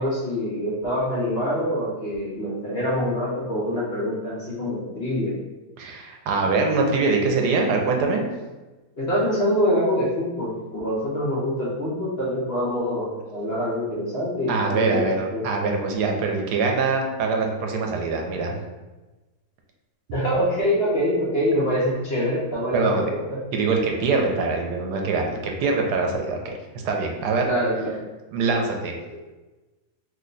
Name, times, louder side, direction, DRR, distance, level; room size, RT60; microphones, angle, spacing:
voice 1, 0.0-5.3 9.0-15.1 15.3-15.5 20.1-23.4 27.5-28.0, equal, 50° left, -7 dB, 0.8 m, -25 dB
voice 2, 5.8-8.2 14.5-18.5 22.7-23.1 23.5-26.4 26.8-27.5 28.3-28.9, right 4 dB, 85° right, 2 dB, 1.1 m, -23 dB
2.9 x 2.2 x 3.8 m, 1.1 s
omnidirectional pair, 1.7 m